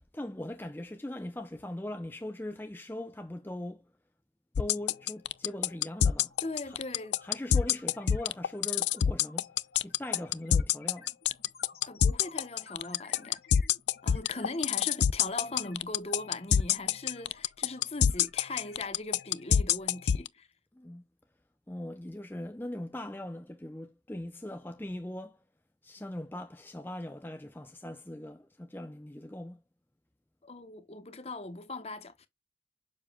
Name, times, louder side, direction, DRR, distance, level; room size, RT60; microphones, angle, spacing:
voice 1, 0.0-3.9 4.6-6.4 6.6-6.8 7.2-9.5 9.8-11.1 20.7-21.0 21.7-25.4 25.8-29.6, left 1 dB, 10° left, 0.6 m, -40 dB
sound 1, 4.6-20.3, left 8 dB, 80° left, 0.4 m, -25 dB
sound 2, 5.0-5.2 5.5-19.8, left 5 dB, 55° left, 1.6 m, -56 dB
voice 2, 6.4-7.2 11.8-13.4 14.0-20.5 30.4-32.3, left 2 dB, 35° left, 1.1 m, -40 dB
7.4 x 7.0 x 2.3 m
head